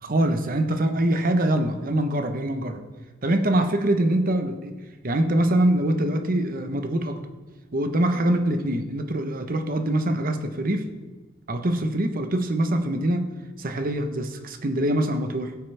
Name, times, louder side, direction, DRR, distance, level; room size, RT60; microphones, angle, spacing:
voice 1, 0.0-2.8 3.2-4.8 5.0-7.2 7.7-10.9 11.5-13.3 13.6-15.6, right 1 dB, 45° right, 7 dB, 1.0 m, -24 dB
17.0 x 9.0 x 3.4 m, 1.3 s
head